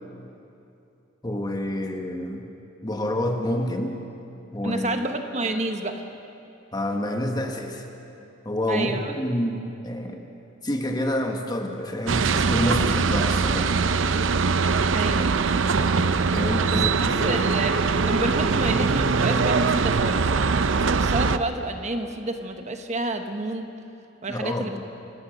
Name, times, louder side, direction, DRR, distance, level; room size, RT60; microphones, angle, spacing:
voice 1, 1.2-2.4 2.8-4.0 4.5-5.0 6.7-7.8 8.4-10.2 10.6-13.7 16.3-17.5 24.2-24.8, left 1 dB, 20° left, 3 dB, 1.5 m, -28 dB
voice 2, 4.6-6.0 8.7-9.1 14.9-15.3 16.7-16.8 17.2-23.7 24.2-24.8, right 2 dB, 35° right, 6 dB, 1.1 m, -29 dB
sound 1, 12.1-21.4, right 4 dB, 85° right, 0.6 m, -22 dB
26.5 x 15.5 x 6.5 m, 2.8 s
head